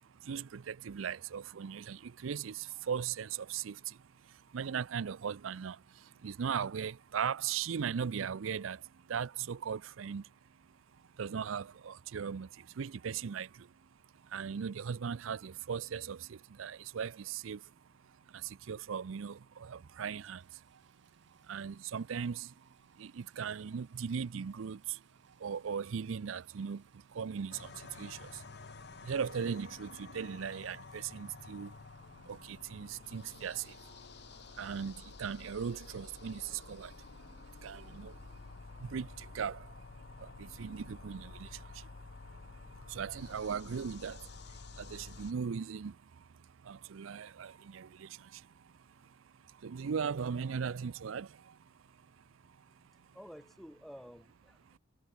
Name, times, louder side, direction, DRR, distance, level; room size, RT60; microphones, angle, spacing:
voice 1, 0.3-3.7 4.5-5.8 6.2-8.8 9.1-10.2 11.2-12.5 12.8-13.5 14.3-17.6 18.7-20.4 21.5-22.5 23.0-24.8 25.4-26.8 27.2-27.6 28.0-28.2 29.1-31.7 32.3-33.6 34.6-36.4 36.7-36.9 37.6-38.1 38.9-39.1 39.3-39.6 40.4-41.5 42.9-44.2 44.9-45.9 46.7-48.1 49.6-51.3, right 7 dB, 80° right, 0.5 m, -38 dB
Rain, 20.4-34.9, right 7 dB, 60° right, 7.0 m, -74 dB
sound 1, 27.5-45.3, left 4 dB, 55° left, 0.7 m, -51 dB
voice 2, 53.1-54.8, equal, ahead, 0.6 m, -51 dB
head